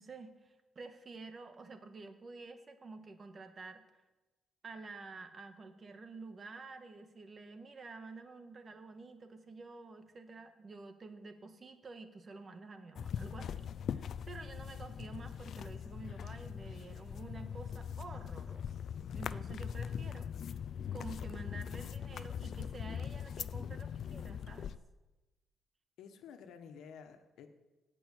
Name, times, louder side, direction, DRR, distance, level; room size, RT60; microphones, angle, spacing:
voice 1, 0.0-4.0 4.6-18.7 19.1-20.5 20.9-24.7, right 3 dB, 40° right, 7 dB, 1.7 m, -50 dB
sound 1, 13.0-24.8, left 8 dB, 60° left, 0.5 m, -41 dB
voice 2, 26.0-27.5, left 7 dB, 80° left, 7 dB, 1.5 m, -52 dB
17.5 x 6.2 x 8.3 m, 1.1 s
cardioid pair, 90°, 0 cm